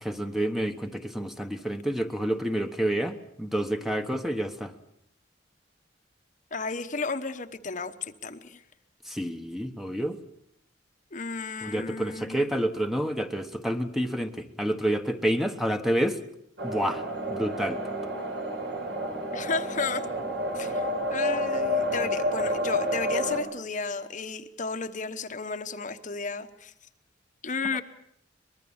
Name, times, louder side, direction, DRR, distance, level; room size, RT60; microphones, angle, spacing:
voice 1, 0.0-4.7 9.1-10.2 11.6-16.2 16.6-17.0 17.3-17.8 27.7-27.8, right 1 dB, ahead, 7 dB, 1.2 m, -29 dB
voice 2, 6.5-8.6 11.1-12.4 19.3-20.0 20.5-26.7 27.4-27.8, left 4 dB, 40° left, 8 dB, 1.1 m, -33 dB
sound 1, 16.6-23.4, equal, 65° right, 5.5 m, -29 dB
24.0 x 21.5 x 7.3 m, 0.72 s
head